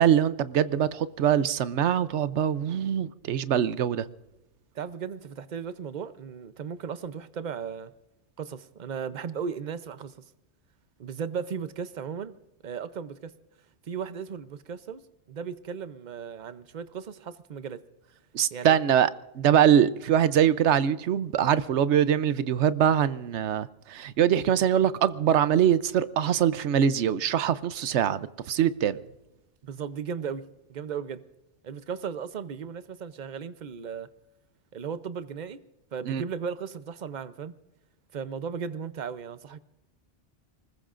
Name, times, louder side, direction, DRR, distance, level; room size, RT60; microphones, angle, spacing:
voice 1, 0.0-4.1 18.3-29.0 36.1-36.2, right 9 dB, 75° right, 1.0 m, -23 dB
voice 2, 4.7-7.9 8.4-10.1 11.0-12.3 12.6-13.3 13.9-15.0 15.3-17.8 18.5-18.8 29.6-31.2 31.6-34.1 34.7-35.6 35.9-37.6 38.1-39.6, right 6 dB, 45° right, 0.8 m, -36 dB
24.5 x 20.5 x 2.5 m
omnidirectional pair, 1.2 m